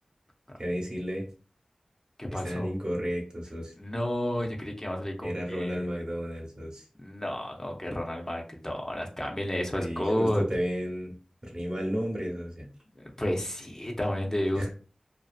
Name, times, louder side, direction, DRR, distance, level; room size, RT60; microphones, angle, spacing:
voice 1, 0.6-1.2 2.3-3.7 5.2-6.8 9.7-11.1 11.4-12.7 14.5-14.7, equal, 45° right, 0 dB, 1.0 m, -33 dB
voice 2, 2.2-2.7 3.8-5.8 7.0-10.4 13.0-14.7, left 1 dB, 25° left, 1 dB, 0.6 m, -31 dB
2.6 x 2.3 x 2.4 m, 0.37 s
wide cardioid pair, 50°, 2 cm